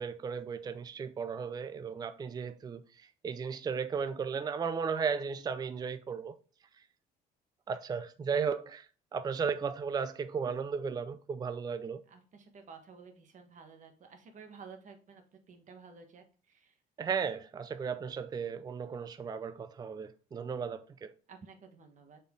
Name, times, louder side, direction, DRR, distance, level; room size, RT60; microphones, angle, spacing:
voice 1, 0.0-2.8 3.2-6.3 7.7-8.8 9.1-12.0 17.0-21.1, right 6 dB, 25° right, 0.4 m, -35 dB
voice 2, 12.1-16.7 21.3-22.2, right 5 dB, 45° right, 1.4 m, -53 dB
6.8 x 4.4 x 3.8 m
cardioid pair, 110°, 17 cm